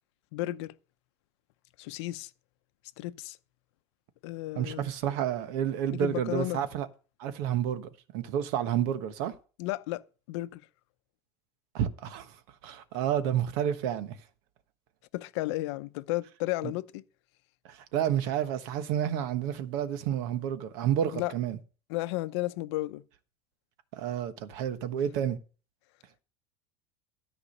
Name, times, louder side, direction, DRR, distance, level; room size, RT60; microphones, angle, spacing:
voice 1, 0.3-0.7 1.8-2.3 3.0-3.4 4.2-4.8 5.9-6.6 9.6-10.6 15.1-17.0 21.1-21.3 21.9-23.0, left 18 dB, 80° left, 0.7 m, -33 dB
voice 2, 4.5-6.9 7.2-9.3 11.7-12.3 12.6-14.2 16.6-16.7 17.7-21.6 23.9-25.4, right 10 dB, 65° right, 1.2 m, -30 dB
13.0 x 5.0 x 6.6 m
cardioid pair, 165°, 14 cm